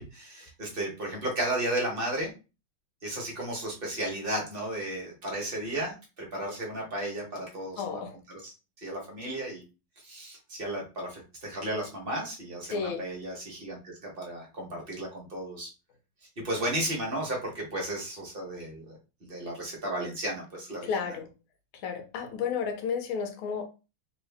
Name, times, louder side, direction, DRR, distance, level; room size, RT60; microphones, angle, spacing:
voice 1, 0.0-2.3 3.0-8.0 8.3-9.6 10.0-15.7 16.4-19.0 19.3-21.2, right 1 dB, 40° right, 0.8 m, -34 dB
voice 2, 7.8-8.1 12.7-13.0 20.8-21.3 21.8-23.6, left 6 dB, 80° left, 1.6 m, -32 dB
3.7 x 2.6 x 3.3 m
omnidirectional pair, 2.3 m